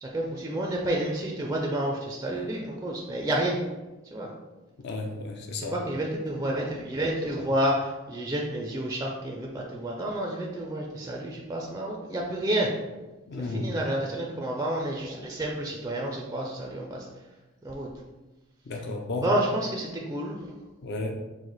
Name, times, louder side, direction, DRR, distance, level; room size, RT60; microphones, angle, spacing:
voice 1, 0.0-3.6 4.1-4.3 5.6-12.7 13.4-17.1 17.6-17.9 19.2-20.5, right 1 dB, 15° right, -1 dB, 0.4 m, -30 dB
voice 2, 4.8-5.8 13.3-13.7 18.7-19.3 20.8-21.1, left 2 dB, 55° left, 2 dB, 0.5 m, -33 dB
4.7 x 2.1 x 3.9 m, 1.1 s
head